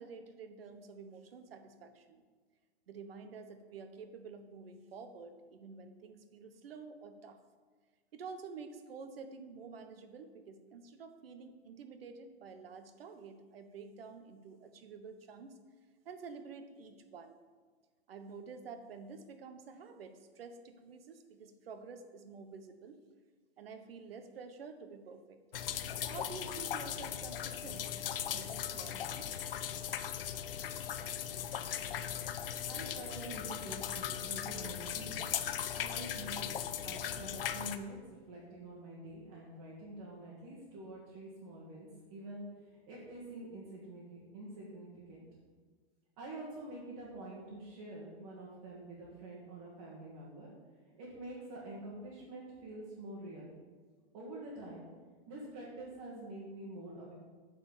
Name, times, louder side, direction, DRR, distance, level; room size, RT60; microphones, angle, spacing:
voice 1, 0.0-2.2 2.9-7.4 8.1-15.6 16.0-17.4 18.1-23.0 23.6-25.4 26.1-29.4, right 5 dB, 60° right, 8 dB, 1.1 m, -49 dB
sound 1, 25.5-37.8, left 9 dB, 60° left, 0.7 m, -38 dB
voice 2, 32.7-35.3 35.7-45.2 46.2-50.5 50.9-53.5 54.1-54.9 55.3-57.1, right 1 dB, 25° right, -7 dB, 1.7 m, -47 dB
9.4 x 4.4 x 7.1 m, 1.5 s
hypercardioid pair, 175°, 33 cm